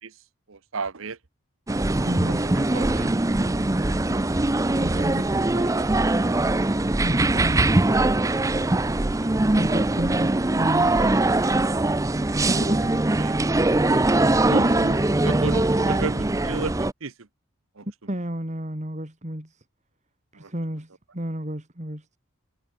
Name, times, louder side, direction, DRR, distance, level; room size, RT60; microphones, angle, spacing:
voice 1, 0.5-1.2 2.3-3.8 4.7-5.1 5.5-6.0 9.2-9.3 11.0-11.1 12.8-13.4 14.5-15.0 15.2-16.7 17.0-17.1 17.8-17.9 20.3-20.5, right 4 dB, 70° right, 1.0 m, -34 dB
sound 1, 1.7-16.9, right 2 dB, 15° right, 0.5 m, -22 dB
voice 2, 2.1-2.5 4.8-5.3 7.0-7.7 9.5-11.0 12.4-13.0 14.6-14.9 18.1-19.6 20.3-22.1, right 1 dB, 35° right, 2.8 m, -31 dB
head